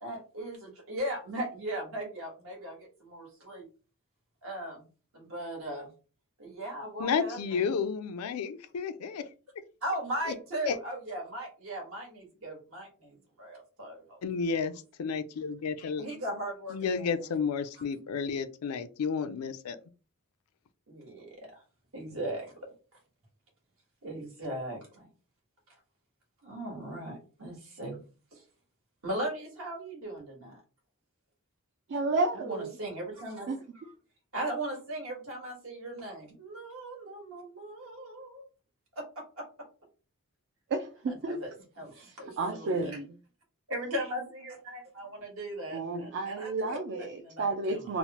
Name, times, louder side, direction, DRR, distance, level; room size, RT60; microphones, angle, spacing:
voice 1, 0.0-3.6 4.4-4.8 5.1-5.9 6.4-7.4 9.8-14.2 16.0-17.2 20.9-21.6 21.9-22.7 24.0-25.1 26.4-28.0 28.3-28.4 29.0-30.6 32.4-33.5 34.3-38.5 38.9-39.5 41.1-41.5 41.8-42.9 43.7-47.9, right 1 dB, 70° right, 1.4 m, -38 dB
voice 2, 7.0-9.3 10.3-10.4 10.7-10.8 14.2-14.7 15.0-16.2 16.7-19.8, left 5 dB, 90° left, 0.4 m, -31 dB
voice 3, 31.9-32.8 33.5-33.6 40.7-41.4 42.0-43.1 45.7-48.0, right 3 dB, 55° right, 0.3 m, -32 dB
3.0 x 2.0 x 2.8 m
head